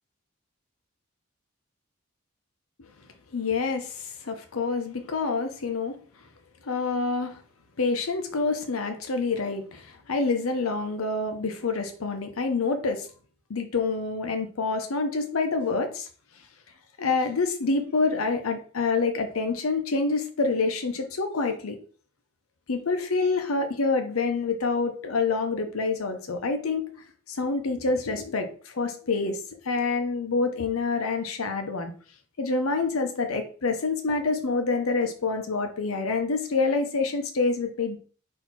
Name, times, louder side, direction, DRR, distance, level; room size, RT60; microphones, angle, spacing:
voice 1, 3.3-6.0 6.6-7.4 7.8-13.1 13.5-16.1 17.0-21.8 22.7-26.9 27.3-31.9 32.4-38.0, left 4 dB, 85° left, 6 dB, 0.7 m, -27 dB
4.4 x 2.8 x 4.1 m, 0.41 s
head